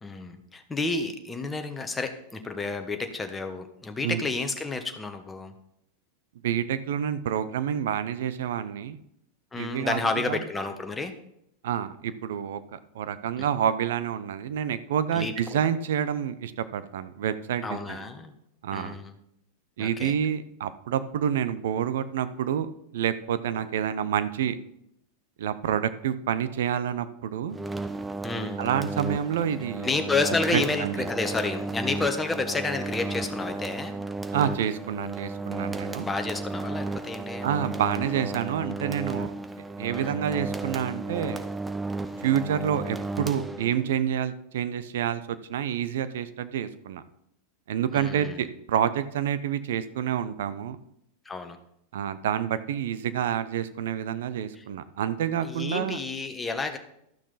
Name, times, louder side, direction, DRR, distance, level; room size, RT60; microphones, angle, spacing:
voice 1, 0.0-5.5 9.5-11.1 15.1-15.6 17.6-18.3 18.7-19.1 19.8-20.1 28.2-28.6 29.8-33.9 36.0-37.5 39.9-40.1 42.1-42.2 47.9-48.4 51.2-51.6 54.6-54.7 55.4-56.8, left 3 dB, 15° left, 6 dB, 1.3 m, -30 dB
voice 2, 6.4-9.0 9.6-10.4 11.6-18.0 18.6-19.0 19.8-24.6 25.4-27.6 28.6-29.9 30.5-31.1 34.3-36.1 37.4-39.3 39.8-41.4 42.2-47.0 47.7-50.8 51.9-56.0, right 9 dB, 70° right, 13 dB, 0.7 m, -28 dB
sound 1, 27.5-44.0, right 2 dB, 10° right, 0.7 m, -34 dB
13.0 x 6.1 x 4.1 m, 0.76 s
hypercardioid pair, 95°, 0 cm